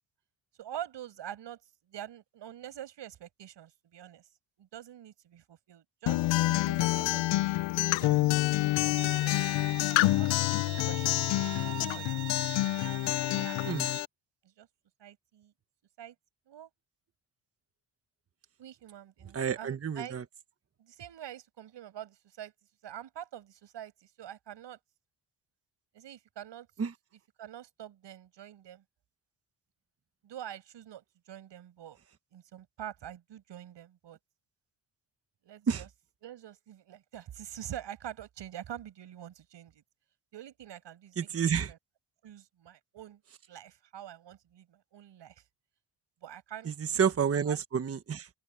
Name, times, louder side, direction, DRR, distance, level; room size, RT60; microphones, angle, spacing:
voice 1, 0.6-1.6 1.9-4.3 4.6-12.3 13.3-13.6 14.4-14.7 15.0-15.5 16.0-16.2 16.5-16.7 18.6-20.2 20.8-22.5 22.8-24.8 25.9-26.7 27.4-28.8 30.2-32.0 32.3-34.2 35.4-35.9 36.2-39.8 40.3-41.3 41.7-41.8 42.2-43.2 43.5-45.4 46.2-46.7 47.0-47.6, right 11 dB, 65° right, 6.1 m, -46 dB
Acoustic guitar, 6.1-14.0, left 18 dB, 70° left, 0.5 m, -27 dB
Bowed string instrument, 9.0-14.0, right 15 dB, 90° right, 4.2 m, -43 dB
voice 2, 19.3-20.2 26.8-26.9 35.7-35.8 41.2-41.7 46.6-48.3, right 7 dB, 30° right, 1.2 m, -29 dB
open air
cardioid pair, 125°, 45 cm